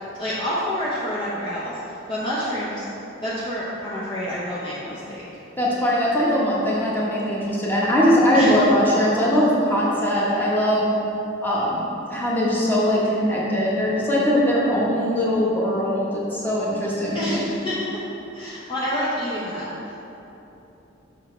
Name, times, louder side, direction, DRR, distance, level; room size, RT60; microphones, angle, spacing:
voice 1, 0.2-1.7 2.1-2.8 3.2-5.2 8.3-8.6 17.1-17.8 18.3-20.0, equal, 25° left, -9 dB, 0.8 m, -28 dB
voice 2, 5.6-10.9 11.4-11.8 12.1-17.4, equal, 10° left, -6 dB, 1.3 m, -21 dB
7.3 x 5.9 x 3.3 m, 3.0 s
head